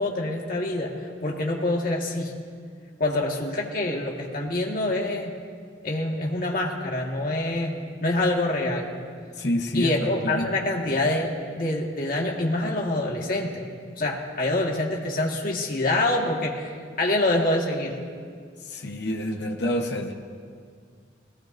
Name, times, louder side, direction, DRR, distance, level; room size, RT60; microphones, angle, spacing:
voice 1, 0.0-2.3 3.0-5.3 5.8-7.7 8.0-8.9 9.7-13.7 14.0-16.7 17.0-18.0, left 2 dB, 50° left, -1 dB, 1.8 m, -26 dB
voice 2, 9.3-10.7 18.6-20.1, left 1 dB, 70° left, 2 dB, 1.1 m, -28 dB
20.5 x 17.5 x 2.6 m, 2.1 s
head